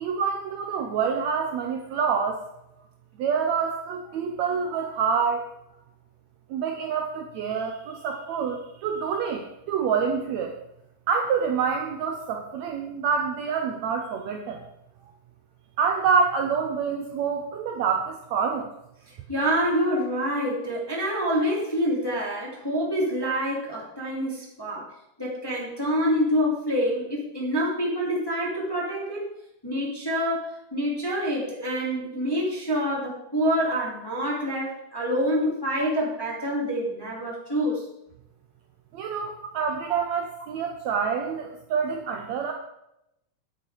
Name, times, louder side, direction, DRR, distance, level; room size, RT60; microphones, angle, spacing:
voice 1, 0.0-2.4 3.2-5.4 6.5-10.5 11.1-14.6 15.8-18.7 38.9-42.5, right 6 dB, 75° right, 3 dB, 1.7 m, -27 dB
voice 2, 19.1-24.9 25.2-29.2 29.6-37.9, equal, 10° left, -4 dB, 1.6 m, -26 dB
9.3 x 8.4 x 4.6 m, 0.84 s
omnidirectional pair, 3.9 m